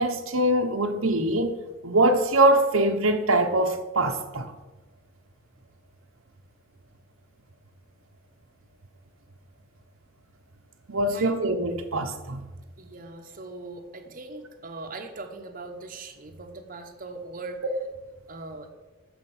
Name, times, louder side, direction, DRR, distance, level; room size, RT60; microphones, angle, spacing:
voice 1, 0.0-1.6 1.8-4.5 10.9-12.5, right 1 dB, 85° right, 1.1 m, -23 dB
voice 2, 12.8-17.6 18.3-18.7, right 3 dB, 40° right, 1.0 m, -40 dB
12.0 x 5.4 x 7.1 m
head